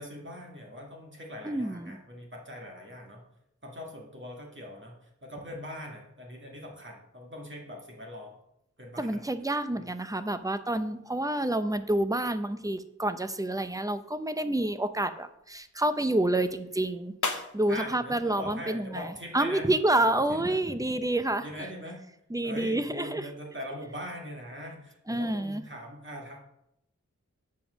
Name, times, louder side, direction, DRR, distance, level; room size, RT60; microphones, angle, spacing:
voice 1, 0.0-3.2 3.6-4.9 5.2-8.3 8.8-9.2 9.7-9.9 17.7-19.7 20.3-20.6 21.4-22.0 22.4-26.4, left 1 dB, 40° right, -1 dB, 1.9 m, -41 dB
voice 2, 1.4-2.0 9.0-21.5 22.3-23.3 25.1-25.6, right 1 dB, 10° right, 10 dB, 0.6 m, -28 dB
sound 1, 14.0-19.5, left 3 dB, 85° left, 0.8 m, -42 dB
7.1 x 5.0 x 6.2 m, 0.81 s
wide cardioid pair, 45°, 30 cm